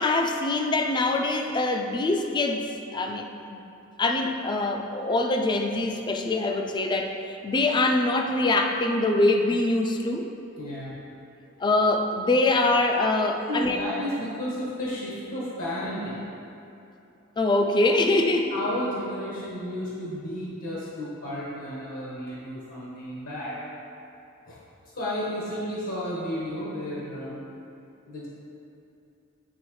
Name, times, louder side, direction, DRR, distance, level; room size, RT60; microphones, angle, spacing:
voice 1, 0.0-3.3 3.5-3.6 4.0-10.3 11.6-13.8 17.4-18.5, left 2 dB, 20° left, 3 dB, 0.3 m, -24 dB
voice 2, 10.6-10.9 13.5-16.2 18.5-23.6 24.5-24.6 24.9-27.4 28.1-28.3, equal, 80° left, -7 dB, 1.2 m, -32 dB
9.3 x 3.5 x 3.1 m, 2.7 s
head